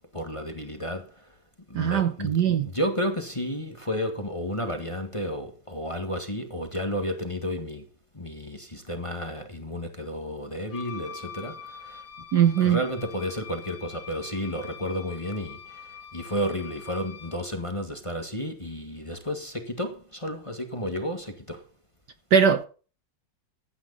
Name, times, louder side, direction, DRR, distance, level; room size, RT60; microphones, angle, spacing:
voice 1, 0.1-1.2 1.7-7.8 8.1-12.1 12.6-21.7, equal, 15° left, 1.6 m, -32 dB
voice 2, 1.7-2.7 12.3-12.8 22.3-22.6, right 8 dB, 60° right, 1.3 m, -21 dB
Wind instrument woodwind instrument, 10.7-17.5, left 7 dB, 45° left, 1.6 m, -44 dB
14.5 x 9.1 x 4.0 m
omnidirectional pair, 2.3 m